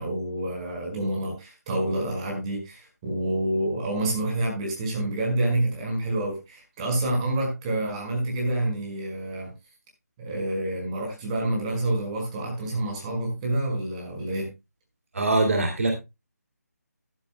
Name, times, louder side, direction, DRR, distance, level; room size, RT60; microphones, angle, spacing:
voice 1, 0.0-9.5 10.2-14.5, right 1 dB, 20° right, 1 dB, 5.1 m, -28 dB
voice 2, 15.1-15.9, right 2 dB, 55° right, 4 dB, 2.7 m, -22 dB
15.0 x 11.5 x 2.2 m, 0.23 s
figure-of-eight pair, 160°, 9 cm